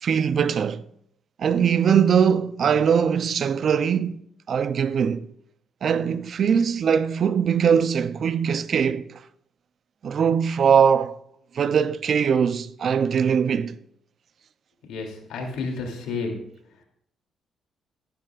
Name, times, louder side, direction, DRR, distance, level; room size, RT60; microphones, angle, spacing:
voice 1, 0.0-0.8 1.4-4.2 4.5-5.3 5.8-9.0 10.0-11.2 11.5-13.7, right 7 dB, 55° right, 0.5 m, -21 dB
voice 2, 14.9-16.4, left 4 dB, 85° left, 2.8 m, -31 dB
13.5 x 11.5 x 2.4 m
cardioid pair, 90°, 0 cm